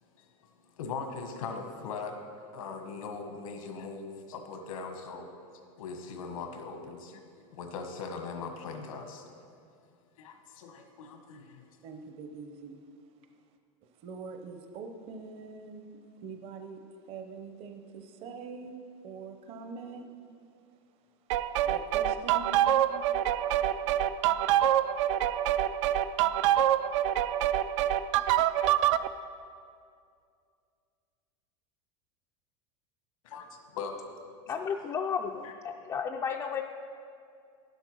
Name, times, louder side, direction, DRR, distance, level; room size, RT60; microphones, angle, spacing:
voice 1, 0.8-2.2 2.5-5.3 5.8-9.3 10.2-11.6 33.2-34.2 35.4-35.5, left 4 dB, 90° left, 5 dB, 1.5 m, -40 dB
voice 2, 11.8-12.8 14.0-16.8 17.1-20.1 21.6-22.8, right 4 dB, 35° right, 6 dB, 0.7 m, -43 dB
sound 1, 21.3-29.1, right 11 dB, 65° right, 0.4 m, -26 dB
voice 3, 34.5-36.6, left 6 dB, 15° left, 2 dB, 0.3 m, -33 dB
10.5 x 8.1 x 6.2 m, 2.3 s
supercardioid pair, 155°, 17 cm